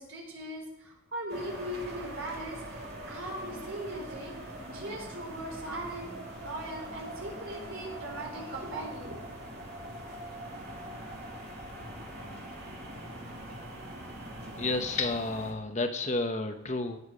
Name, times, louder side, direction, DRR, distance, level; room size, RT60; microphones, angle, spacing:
voice 1, 0.0-4.4 4.7-9.2, right 1 dB, 65° right, 0 dB, 4.3 m, -39 dB
sound 1, 1.3-15.5, right 1 dB, 50° right, 2.9 m, -42 dB
voice 2, 14.6-17.0, left 3 dB, 35° left, 6 dB, 0.9 m, -31 dB
18.5 x 7.3 x 5.1 m, 0.84 s
head